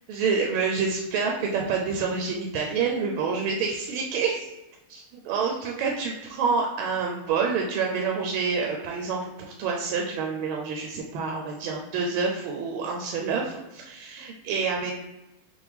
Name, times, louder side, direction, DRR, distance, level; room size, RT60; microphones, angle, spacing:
voice 1, 0.1-4.5 4.9-14.9, right 5 dB, 75° right, 0 dB, 1.3 m, -28 dB
5.8 x 2.1 x 3.5 m, 0.99 s
omnidirectional pair, 2.4 m